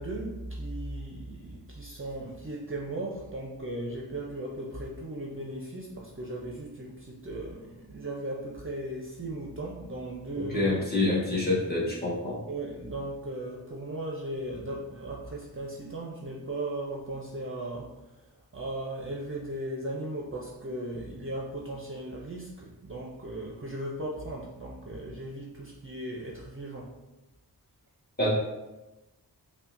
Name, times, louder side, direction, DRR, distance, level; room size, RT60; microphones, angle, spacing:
voice 1, 0.0-10.8 12.5-27.0, right 1 dB, 35° right, -2 dB, 0.5 m, -37 dB
voice 2, 10.5-12.4 28.2-28.3, left 2 dB, 25° left, -6 dB, 1.3 m, -26 dB
5.4 x 2.2 x 2.5 m, 1.0 s
wide cardioid pair, 75°, 39 cm